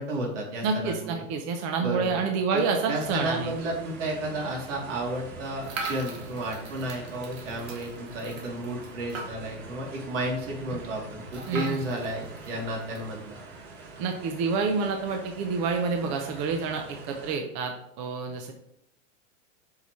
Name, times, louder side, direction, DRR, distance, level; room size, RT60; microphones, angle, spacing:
voice 1, 0.0-1.3 1.8-2.2 2.5-13.4, right 1 dB, 65° right, -1 dB, 2.9 m, -32 dB
voice 2, 0.6-3.5 11.5-11.8 14.0-18.5, right 4 dB, 20° right, 4 dB, 0.5 m, -28 dB
sound 1, 3.0-17.4, right 3 dB, 50° right, 3.0 m, -45 dB
sound 2, 5.6-9.7 10.1-10.2 10.4-10.5 11.3-13.1, right 3 dB, 90° right, 2.3 m, -40 dB
8.2 x 5.6 x 3.1 m, 0.74 s
supercardioid pair, 155°, 39 cm